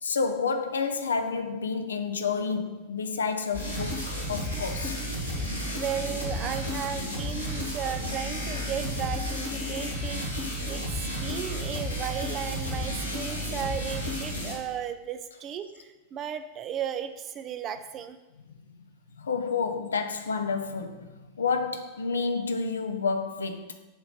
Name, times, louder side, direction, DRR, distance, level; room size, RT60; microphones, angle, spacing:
voice 1, 0.0-5.0 19.2-23.8, left 5 dB, 70° left, 0.5 m, -30 dB
sound 1, 3.5-14.5, equal, 90° right, 1.5 m, -32 dB
voice 2, 5.7-18.2, right 8 dB, 30° right, 0.4 m, -35 dB
7.2 x 3.2 x 5.5 m
figure-of-eight pair, 90°, 0 cm